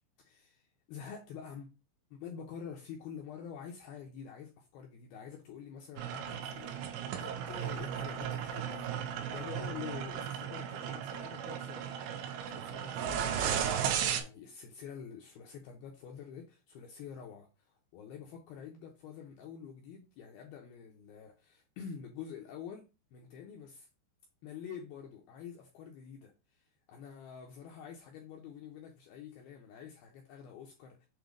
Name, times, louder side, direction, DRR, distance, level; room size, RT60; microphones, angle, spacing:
voice 1, 0.2-1.7 2.1-12.1 12.4-13.5 14.1-23.9 24.4-31.1, left 7 dB, 75° left, 2.3 m, -47 dB
sound 1, 6.0-14.2, right 9 dB, 80° right, 3.0 m, -35 dB
7.7 x 2.7 x 5.1 m
omnidirectional pair, 5.3 m